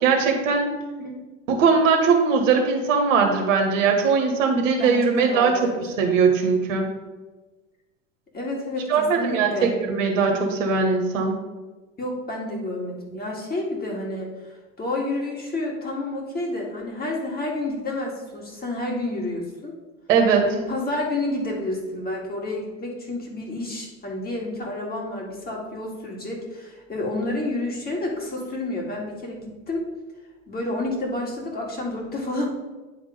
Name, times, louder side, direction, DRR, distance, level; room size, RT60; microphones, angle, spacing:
voice 1, 0.0-0.7 1.5-5.6 6.0-6.9 8.9-11.4 20.1-20.5, right 5 dB, 70° right, 3 dB, 1.5 m, -20 dB
voice 2, 4.8-5.8 8.3-9.7 12.0-19.7 20.4-29.8 30.5-32.5, left 2 dB, 25° left, -1 dB, 2.2 m, -30 dB
9.6 x 3.7 x 5.0 m, 1.2 s
hypercardioid pair, 85°, 40 cm